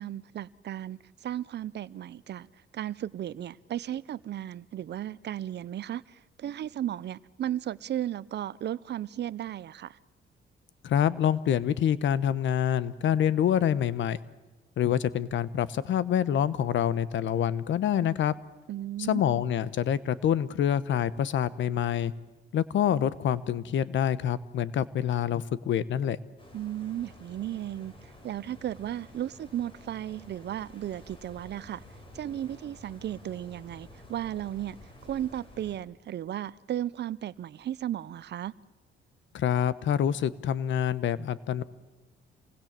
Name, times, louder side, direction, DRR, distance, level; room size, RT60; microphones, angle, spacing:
voice 1, 0.0-2.5 2.7-10.0 18.7-19.2 26.5-31.8 32.1-34.8 35.0-38.5, right 11 dB, 60° right, 0.7 m, -35 dB
voice 2, 10.8-14.2 14.8-18.3 19.0-22.1 22.5-26.2 39.3-41.6, left 9 dB, 70° left, 1.1 m, -26 dB
sound 1, 26.4-35.8, left 1 dB, 25° left, 7.3 m, -51 dB
27.5 x 20.0 x 7.5 m
cardioid pair, 90°, 20 cm